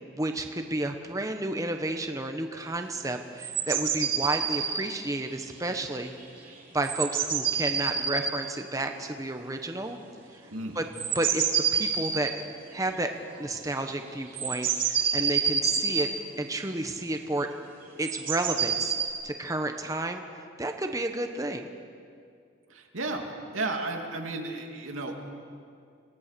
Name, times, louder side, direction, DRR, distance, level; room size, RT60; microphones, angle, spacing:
voice 1, 0.0-6.1 6.7-10.0 10.8-10.9 11.1-11.4 11.7-12.4 12.7-13.1 13.4-16.1 16.4-17.5 18.0-19.0 19.2-21.7, right 2 dB, 15° right, 5 dB, 1.0 m, -31 dB
sound 1, 3.4-4.9 6.1-6.2 6.5-6.6 6.8-8.4 10.9-12.4 13.6-13.7 13.9-14.0 14.3-16.1 18.0-19.1, right 7 dB, 45° right, 3.0 m, -28 dB
voice 2, 22.7-25.1, right 2 dB, 90° right, 2 dB, 2.7 m, -33 dB
27.0 x 18.5 x 6.8 m, 2.3 s
head